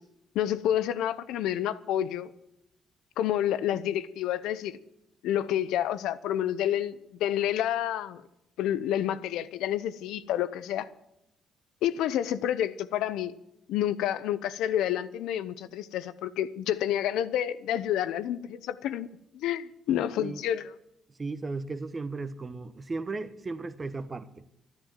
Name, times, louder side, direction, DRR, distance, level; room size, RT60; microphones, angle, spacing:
voice 1, 0.3-2.3 3.2-4.8 5.2-8.2 8.6-10.9 11.8-13.3 13.7-19.1 19.3-20.7, left 11 dB, 90° left, 0.8 m, -29 dB
voice 2, 19.9-20.4 21.2-24.3, right 3 dB, 30° right, 1.1 m, -36 dB
13.0 x 11.5 x 7.4 m
cardioid pair, 90°, 0 cm